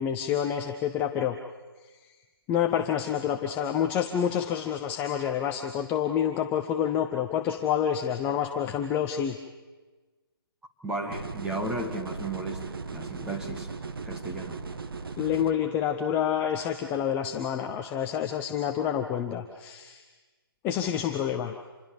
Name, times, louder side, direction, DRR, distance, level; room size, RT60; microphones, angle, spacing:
voice 1, 0.0-1.4 2.5-9.4 15.2-20.0 20.6-21.6, left 9 dB, 15° left, 5 dB, 0.8 m, -28 dB
voice 2, 10.8-13.7 14.1-14.6, right 2 dB, 5° right, 1 dB, 1.8 m, -34 dB
sound 1, 11.1-15.5, right 4 dB, 65° right, 1.8 m, -37 dB
27.5 x 21.5 x 7.1 m, 1.3 s
figure-of-eight pair, 155°, 13 cm